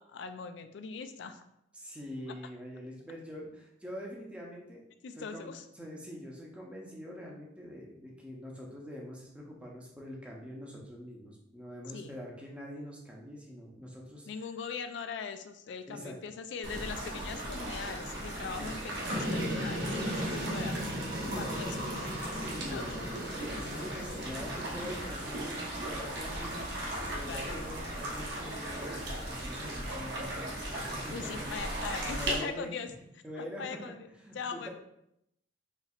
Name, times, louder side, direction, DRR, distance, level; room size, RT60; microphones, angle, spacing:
voice 1, 0.0-1.4 2.3-2.4 5.0-5.6 11.9-12.1 14.3-22.0 22.7-22.9 27.2-27.6 31.1-32.9 33.4-34.1 34.3-34.7, left 5 dB, 65° left, 9 dB, 0.3 m, -41 dB
voice 2, 1.7-4.8 5.2-5.5 5.7-14.3 15.9-16.2 18.6-18.7 20.2-20.6 21.1-21.8 22.3-31.5 32.0-32.7 33.2-34.7, equal, 5° right, -2 dB, 0.6 m, -44 dB
sound 1, 16.6-32.3, right 1 dB, 60° right, 1.0 m, -38 dB
sound 2, 19.1-25.0, equal, 80° right, 1.2 m, -36 dB
4.3 x 3.0 x 2.4 m, 0.79 s
head